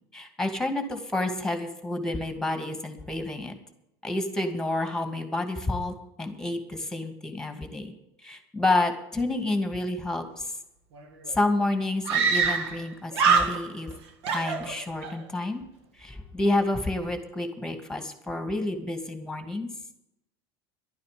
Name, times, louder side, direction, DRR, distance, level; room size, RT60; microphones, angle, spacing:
voice 1, 0.1-3.5 4.0-7.9 8.2-10.5 11.3-13.9 14.3-15.6 16.0-19.7, left 2 dB, 5° left, 7 dB, 2.4 m, -29 dB
Screaming, 11.0-11.1 11.3-11.4 12.1-12.9 13.1-13.9 14.2-15.2, right 5 dB, 80° right, 1.7 m, -24 dB
12.0 x 9.5 x 8.5 m, 0.82 s
hypercardioid pair, 85°, 14 cm